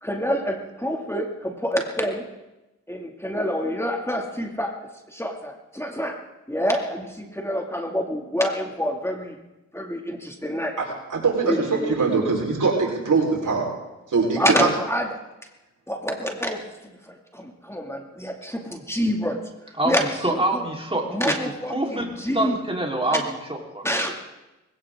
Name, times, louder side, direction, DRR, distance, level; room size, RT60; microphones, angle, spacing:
voice 1, 0.0-2.2 2.9-4.7 5.1-6.2 6.5-9.4 9.7-10.8 11.5-11.9 14.3-15.1 15.9-19.4 19.8-20.0 20.3-20.6 21.1-22.6 23.1-23.2 23.8-24.3, equal, 10° left, 2 dB, 2.5 m, -27 dB
voice 2, 11.1-13.7 14.1-14.7, right 4 dB, 80° right, -2 dB, 4.6 m, -22 dB
voice 3, 19.8-21.4 21.7-23.8, right 1 dB, 20° right, -1 dB, 3.9 m, -26 dB
20.0 x 17.5 x 3.8 m, 1.0 s
cardioid pair, 45°, 31 cm